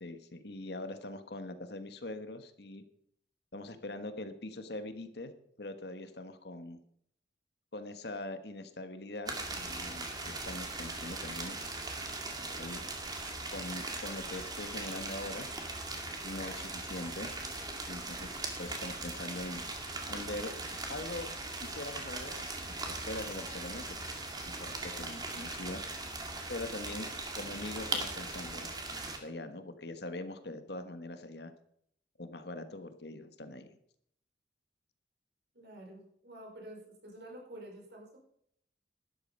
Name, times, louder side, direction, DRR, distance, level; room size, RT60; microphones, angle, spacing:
voice 1, 0.0-2.8 3.5-5.3 5.6-6.8 7.7-11.6 12.5-12.8 13.5-15.5 15.9-17.3 17.9-18.3 18.6-19.6 20.1-20.5 20.9-21.3 21.6-24.0 24.4-25.8 26.5-27.1 27.3-28.7 29.2-31.5 32.2-33.7, left 2 dB, 65° left, 9 dB, 1.4 m, -42 dB
sound 1, 9.3-29.2, right 2 dB, 20° right, 2.1 m, -39 dB
voice 2, 35.5-38.2, right 1 dB, 65° right, 0 dB, 5.0 m, -49 dB
12.5 x 11.0 x 5.4 m, 0.68 s
head